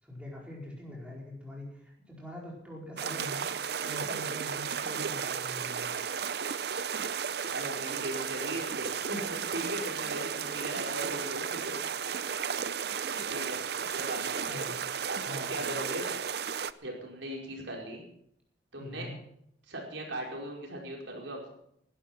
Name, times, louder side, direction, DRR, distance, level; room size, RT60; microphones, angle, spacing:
voice 1, 0.0-5.9 10.0-10.1 14.4-14.7 15.2-15.6 18.8-19.1, left 1 dB, 5° right, -3 dB, 4.6 m, -44 dB
sound 1, 3.0-16.7, right 7 dB, 55° right, 0.6 m, -34 dB
voice 2, 7.5-11.8 13.0-14.7 15.1-16.0 16.8-18.0 18.7-19.1 19.7-21.5, right 1 dB, 85° right, -1 dB, 5.0 m, -39 dB
19.0 x 12.0 x 5.9 m, 0.73 s
head